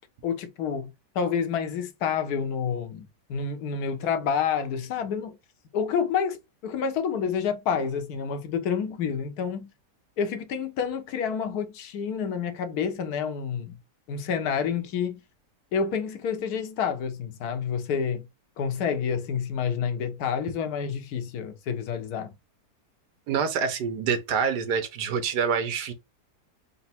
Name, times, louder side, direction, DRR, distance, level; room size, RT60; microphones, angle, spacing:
voice 1, 0.2-5.4 5.7-9.7 10.2-13.8 14.1-15.2 15.7-18.3 18.6-22.3, left 7 dB, 70° left, 1.2 m, -29 dB
voice 2, 23.3-25.9, right 6 dB, 80° right, 1.3 m, -26 dB
4.0 x 2.0 x 4.2 m
omnidirectional pair, 1.8 m